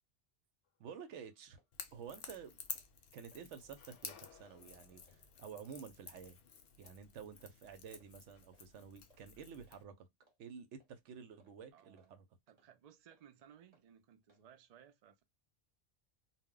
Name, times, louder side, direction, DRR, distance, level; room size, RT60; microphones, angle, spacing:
sound 1, 0.6-1.5 2.1-3.1 3.4-7.3, left 8 dB, 85° left, 0.9 m, -66 dB
voice 1, 0.8-1.6 1.9-2.6 3.1-6.4 6.8-10.1 10.4-12.2, right 7 dB, 85° right, 0.9 m, -51 dB
sound 2, 1.0-1.1 1.5-1.7 2.1-2.3 2.6-3.0 3.3-3.4 3.9-4.1 4.5-4.6 5.1-5.2 5.7-5.8 6.2-6.4 6.8-7.0 7.4-7.6 7.9-8.1 8.5-8.7 9.1-9.2 9.6-9.8 10.2-10.4 10.8-10.9 11.4-11.6 12.0-12.1 12.6-12.7 13.1-13.2 13.7-13.9 14.3-14.4, right 2 dB, 35° right, 0.9 m, -72 dB
Crackle / Crack, 1.7-9.8, left 7 dB, 60° left, 0.7 m, -52 dB
voice 2, 11.7-12.2 12.5-15.2, right 9 dB, 60° right, 0.4 m, -61 dB
2.2 x 2.1 x 3.6 m
omnidirectional pair, 1.2 m